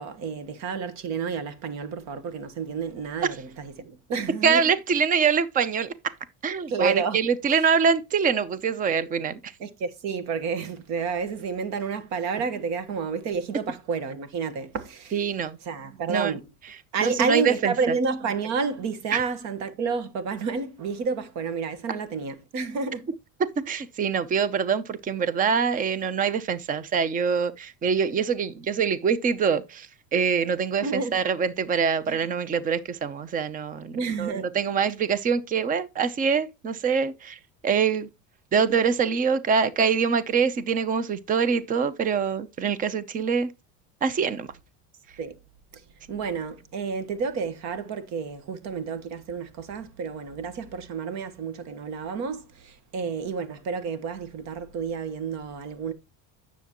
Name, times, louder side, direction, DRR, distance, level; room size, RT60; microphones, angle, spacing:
voice 1, 0.0-4.7 6.7-7.5 9.6-15.2 15.6-16.5 16.9-23.1 30.8-31.2 32.1-32.2 33.9-34.5 45.2-45.4 46.1-55.9, right 5 dB, 55° right, 1.5 m, -30 dB
voice 2, 4.4-5.9 6.4-9.5 15.1-15.6 16.1-16.3 17.0-17.7 19.1-19.2 23.7-29.9 30.1-38.1 38.5-43.5 44.0-44.5, right 6 dB, 25° right, 0.8 m, -24 dB
9.8 x 7.0 x 3.0 m
cardioid pair, 150°, 33 cm